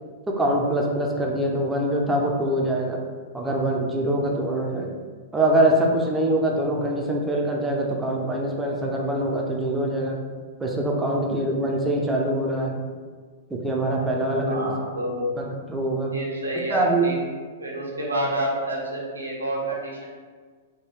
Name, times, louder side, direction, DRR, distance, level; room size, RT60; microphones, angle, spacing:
voice 1, 0.3-3.0 3.3-4.9 5.3-10.2 10.6-12.8 13.5-14.7 15.4-16.1 16.7-17.0, right 1 dB, 10° right, -1 dB, 0.5 m, -24 dB
voice 2, 14.5-15.3 16.1-17.2 17.6-20.0, right 1 dB, 80° right, -3 dB, 0.7 m, -28 dB
3.5 x 2.2 x 3.0 m, 1.6 s
figure-of-eight pair, 100°, 0 cm